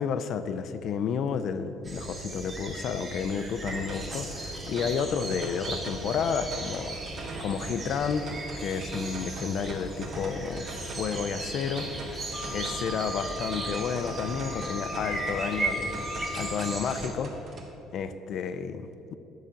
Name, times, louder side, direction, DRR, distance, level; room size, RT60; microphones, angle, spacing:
voice 1, 0.0-7.0 7.4-8.3 8.6-12.2 12.5-16.1 16.3-17.4 17.9-19.1, left 6 dB, 50° left, 11 dB, 0.5 m, -31 dB
sound 1, 1.8-17.1, right 2 dB, 25° right, 1.6 m, -37 dB
sound 2, 3.7-17.7, right 2 dB, 45° right, 1.5 m, -41 dB
Wind instrument woodwind instrument, 12.3-16.8, left 1 dB, 15° left, 1.2 m, -39 dB
9.4 x 5.0 x 7.0 m, 2.8 s
cardioid pair, 155°, 0 cm